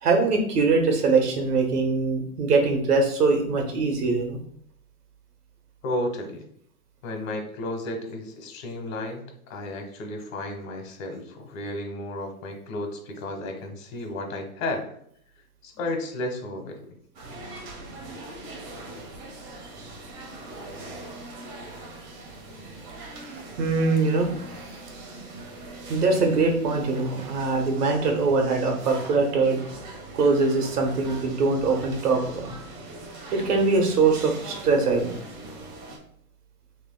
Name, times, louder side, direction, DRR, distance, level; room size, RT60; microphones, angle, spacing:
voice 1, 0.0-4.4 23.1-23.3 23.6-24.3 24.6-24.8 25.9-29.6 30.1-32.5 33.3-35.2, right 3 dB, 85° right, 3 dB, 1.4 m, -22 dB
voice 2, 5.8-6.5 7.0-9.2 9.5-14.9 15.6-16.8, left 1 dB, 60° left, 4 dB, 1.5 m, -33 dB
sound 1, 17.1-36.0, right 2 dB, 35° right, 1.2 m, -41 dB
6.3 x 3.3 x 2.3 m, 0.67 s
hypercardioid pair, 140°, 45 cm